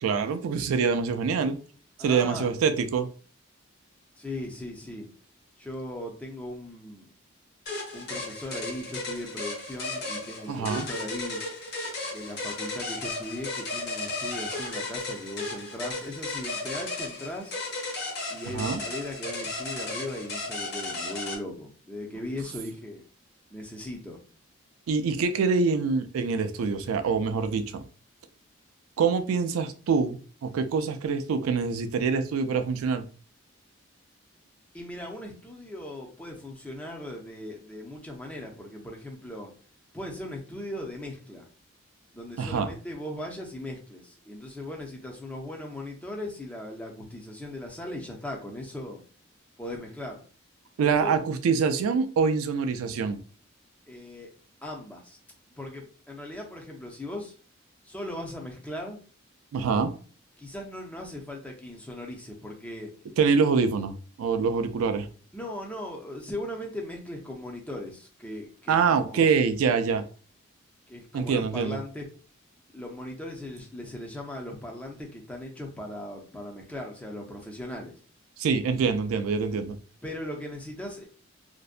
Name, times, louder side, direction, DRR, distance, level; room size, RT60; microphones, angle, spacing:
voice 1, 0.0-1.6 2.0-3.1 10.5-10.9 18.5-18.8 24.9-27.8 29.0-33.1 42.4-42.7 50.8-53.2 59.5-59.9 63.2-65.1 68.7-70.0 71.1-71.8 78.4-79.8, right 5 dB, 90° right, 9 dB, 0.3 m, -25 dB
voice 2, 2.0-2.5 4.2-5.1 5.6-7.1 7.9-11.4 12.1-17.6 18.3-23.0 23.5-24.2 34.7-39.5 39.9-41.5 42.1-49.0 49.6-50.2 50.8-51.1 53.9-54.3 54.6-55.2 55.6-57.3 57.8-59.0 60.4-62.9 65.3-69.3 70.9-72.0 72.7-77.9 80.0-81.1, left 1 dB, 5° left, 0 dB, 0.4 m, -38 dB
sound 1, 7.7-21.4, left 2 dB, 50° left, 0.8 m, -35 dB
2.6 x 2.1 x 2.4 m, 0.40 s
head